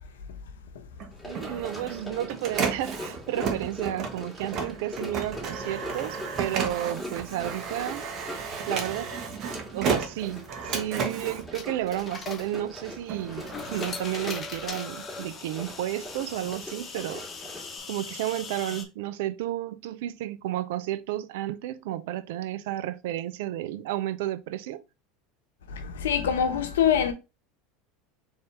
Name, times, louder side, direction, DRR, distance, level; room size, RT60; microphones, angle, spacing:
Printer, 0.9-12.4 12.8-14.7, right 5 dB, 50° right, 1.1 m, -33 dB
Run, 1.1-17.8, left 1 dB, ahead, 2.5 m, -42 dB
voice 1, 1.2-8.0 8.7-9.1 9.7-17.3 17.9-24.8, right 13 dB, 75° right, 0.4 m, -32 dB
sound 1, 10.1-18.8, left 4 dB, 30° left, 1.0 m, -41 dB
voice 2, 25.7-27.1, left 8 dB, 85° left, 0.8 m, -24 dB
4.1 x 3.5 x 3.4 m
hypercardioid pair, 95°, 0 cm